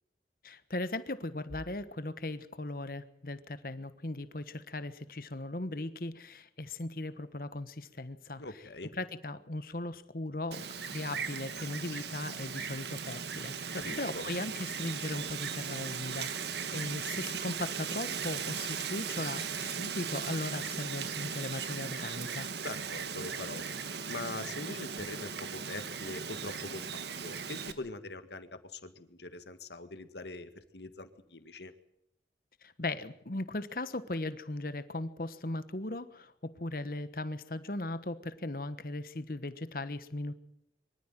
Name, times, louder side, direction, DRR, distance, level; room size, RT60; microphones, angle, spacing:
voice 1, 0.4-8.4 9.0-22.5 32.6-40.3, left 2 dB, 50° left, 13 dB, 1.3 m, -38 dB
voice 2, 8.4-8.9 13.7-14.2 22.6-23.6 24.1-31.7, left 2 dB, 75° left, 9 dB, 1.9 m, -43 dB
Wind, 10.5-27.7, right 6 dB, 75° right, 1.5 m, -38 dB
24.0 x 14.0 x 9.2 m, 0.78 s
head